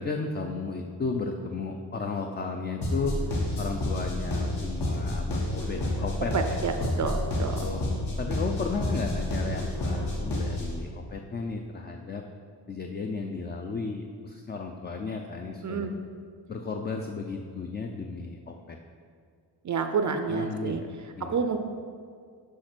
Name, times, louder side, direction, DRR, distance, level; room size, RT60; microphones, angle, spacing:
voice 1, 0.0-3.2 3.6-6.6 7.6-7.8 8.2-12.2 12.7-16.0 16.5-18.8 20.3-20.9 21.1-21.4, left 4 dB, 25° left, 3 dB, 0.4 m, -34 dB
sound 1, 2.8-10.8, left 1 dB, 75° left, 1.7 m, -30 dB
voice 2, 6.3-6.7 7.0-7.6 15.6-15.9 19.6-20.8 21.3-21.6, right 5 dB, 45° right, 6 dB, 0.5 m, -28 dB
6.5 x 5.2 x 6.0 m, 2.1 s
wide cardioid pair, 145°, 41 cm